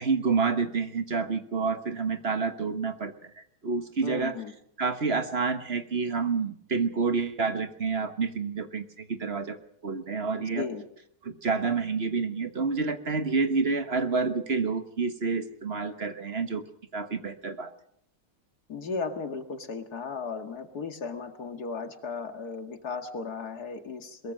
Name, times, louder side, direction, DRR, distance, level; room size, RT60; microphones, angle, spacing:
voice 1, 0.0-4.3 4.8-9.6 9.8-10.6 11.2-16.6 16.9-17.7, right 4 dB, 45° right, 9 dB, 1.5 m, -28 dB
voice 2, 4.0-4.5 10.4-10.9 18.7-24.3, left 4 dB, 90° left, 7 dB, 2.5 m, -35 dB
22.0 x 22.0 x 6.5 m, 0.68 s
omnidirectional pair, 1.6 m